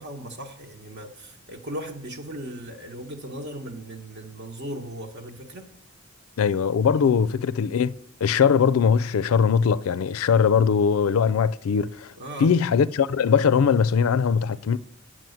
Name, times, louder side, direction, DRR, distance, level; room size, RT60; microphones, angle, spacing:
voice 1, 0.0-5.6 6.9-7.2 12.2-12.5, right 1 dB, 55° right, 1.2 m, -37 dB
voice 2, 6.4-7.9 8.2-12.1 12.4-14.8, left 6 dB, 80° left, 0.4 m, -21 dB
9.0 x 6.2 x 7.8 m
head